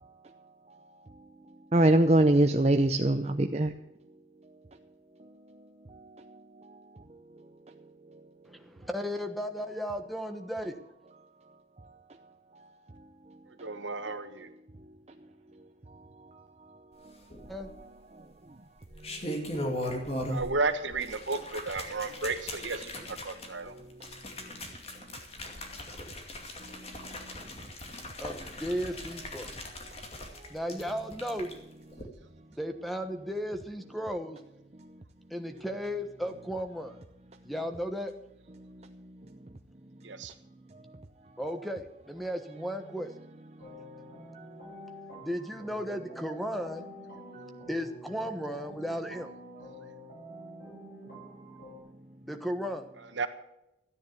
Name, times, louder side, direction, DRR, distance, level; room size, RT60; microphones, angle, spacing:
voice 1, 1.7-3.7, right 1 dB, 35° right, 5 dB, 0.7 m, -22 dB
voice 2, 8.4-10.7 17.5-17.7 28.2-29.5 30.5-31.5 32.5-34.4 35.3-37.0 37.4-38.1 41.4-43.1 45.2-46.8 47.7-49.3 52.3-52.9, equal, ahead, 7 dB, 1.2 m, -35 dB
voice 3, 13.5-14.5 20.2-23.7 40.0-40.3 53.1-53.3, right 3 dB, 80° right, 9 dB, 1.4 m, -33 dB
sound 1, 17.3-18.0 18.8-20.6 20.9-31.5 31.9-32.0, left 1 dB, 30° left, 2.5 m, -39 dB
sound 2, 43.6-51.8, equal, 60° left, 7.2 m, -48 dB
14.0 x 9.7 x 6.9 m, 0.87 s
head